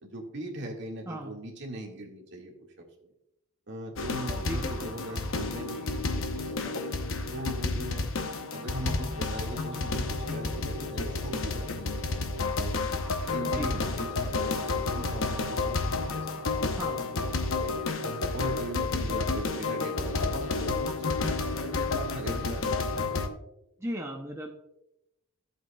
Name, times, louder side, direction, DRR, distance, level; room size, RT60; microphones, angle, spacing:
voice 1, 0.0-2.7 3.0-3.1 3.7-6.0 6.4-8.1 8.5-12.8 13.3-16.5 17.6-17.9 18.3-22.8, right 1 dB, 55° right, 0 dB, 1.8 m, -40 dB
sound 1, 4.0-23.3, left 3 dB, 65° left, 0.8 m, -31 dB
voice 2, 4.4-4.9 13.5-13.8 16.8-17.1 23.8-24.5, equal, 15° right, 1 dB, 0.6 m, -36 dB
14.0 x 7.8 x 2.3 m, 0.85 s
head